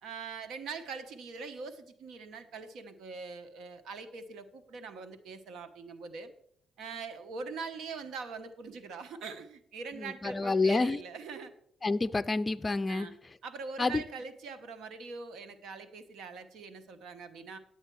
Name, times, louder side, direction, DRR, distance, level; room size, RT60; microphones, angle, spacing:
voice 1, 0.0-6.3 6.8-11.5 12.9-13.1 13.4-17.6, right 4 dB, 75° right, 1.0 m, -43 dB
voice 2, 10.0-11.0 11.8-13.1 13.8-14.0, left 3 dB, 25° left, 0.5 m, -28 dB
10.0 x 8.1 x 4.6 m
cardioid pair, 90°, 0 cm